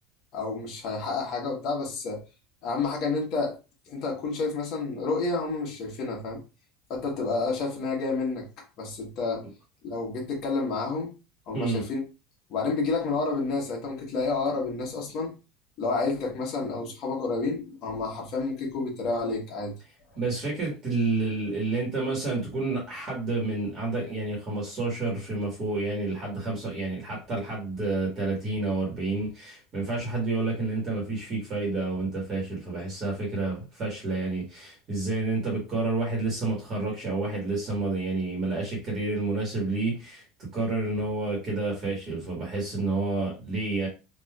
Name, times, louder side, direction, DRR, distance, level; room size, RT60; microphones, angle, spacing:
voice 1, 0.3-2.2 2.6-3.6 3.9-6.4 6.9-8.5 8.8-9.5 9.8-11.1 11.5-12.0 12.5-15.3 15.8-19.7, left 3 dB, 45° left, 1.2 m, -29 dB
voice 2, 11.5-11.8 20.1-43.9, right 3 dB, 30° right, 1.3 m, -29 dB
3.4 x 2.5 x 2.3 m
cardioid pair, 155°, 0 cm